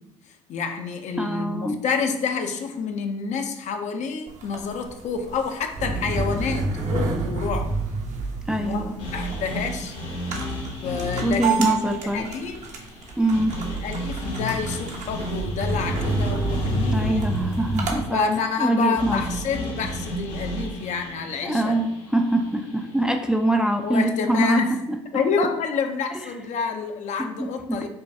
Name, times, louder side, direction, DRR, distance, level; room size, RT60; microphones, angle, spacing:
voice 1, 0.5-7.7 8.6-9.9 10.8-12.6 13.7-17.2 18.1-21.8 23.8-24.8 25.1-27.9, left 5 dB, 55° left, 6 dB, 0.6 m, -28 dB
voice 2, 1.2-1.8 8.5-9.0 11.2-12.3 13.2-13.6 16.9-18.2 18.6-19.2 21.4-24.6 24.9-25.0 27.4-27.8, right 1 dB, 5° right, 4 dB, 0.4 m, -23 dB
sound 1, 4.3-18.0, right 3 dB, 55° right, 0.9 m, -29 dB
sound 2, 9.0-23.2, equal, 75° left, 1.2 m, -34 dB
5.3 x 2.3 x 2.7 m, 0.86 s
hypercardioid pair, 65°, 15 cm